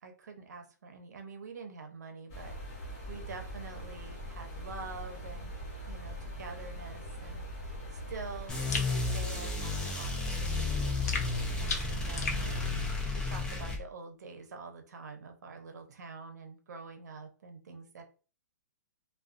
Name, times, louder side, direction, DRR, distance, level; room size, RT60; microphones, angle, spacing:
voice 1, 0.0-2.7 3.1-5.5 5.9-7.7 7.9-12.6 13.2-18.0, right 4 dB, 75° right, 5 dB, 0.7 m, -46 dB
sound 1, 2.3-12.7, equal, 30° left, 1.0 m, -42 dB
sound 2, 8.5-13.8, left 3 dB, 5° left, 0.4 m, -33 dB
sound 3, 8.7-8.9 11.1-12.4, left 4 dB, 65° left, 0.7 m, -35 dB
2.3 x 2.3 x 2.5 m, 0.37 s
hypercardioid pair, 165°, 9 cm